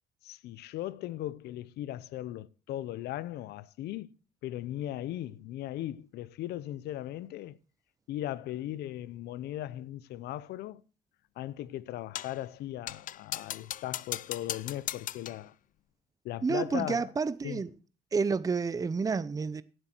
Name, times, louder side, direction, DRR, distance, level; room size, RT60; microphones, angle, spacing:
voice 1, 0.2-4.1 4.4-7.6 8.1-10.8 11.4-15.5 16.2-17.1 17.4-17.6, left 13 dB, 75° left, 0.8 m, -38 dB
sound 1, 12.1-12.4 12.9-15.5, left 12 dB, 50° left, 0.5 m, -38 dB
voice 2, 16.4-17.7 18.1-19.6, right 5 dB, 20° right, 0.7 m, -29 dB
16.5 x 7.8 x 4.5 m
cardioid pair, 110°, 17 cm